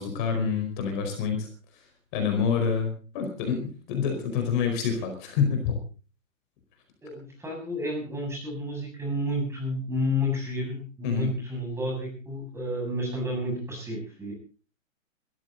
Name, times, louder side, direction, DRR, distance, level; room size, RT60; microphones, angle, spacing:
voice 1, 0.0-1.5 2.1-5.8 11.0-11.3, left 6 dB, 40° left, 4 dB, 4.8 m, -27 dB
voice 2, 7.0-14.3, left 1 dB, 5° right, -1 dB, 7.4 m, -31 dB
22.0 x 14.0 x 4.0 m, 0.37 s
hypercardioid pair, 155°, 40 cm